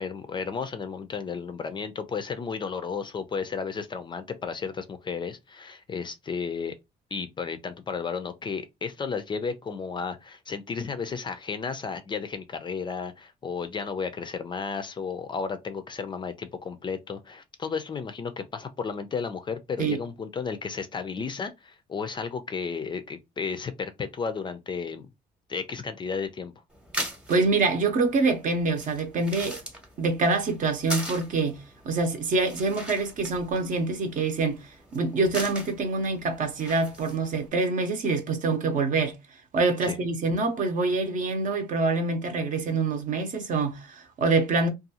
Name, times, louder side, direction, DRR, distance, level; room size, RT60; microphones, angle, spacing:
voice 1, 0.0-6.8 7.1-25.1 25.5-26.5 39.8-40.0, left 5 dB, 30° left, 0.4 m, -33 dB
sound 1, 26.7-37.5, equal, 5° right, 0.8 m, -40 dB
voice 2, 27.3-29.6 30.0-39.2 39.5-44.7, right 3 dB, 50° right, 0.8 m, -26 dB
2.5 x 2.3 x 2.7 m
cardioid pair, 110°, 17 cm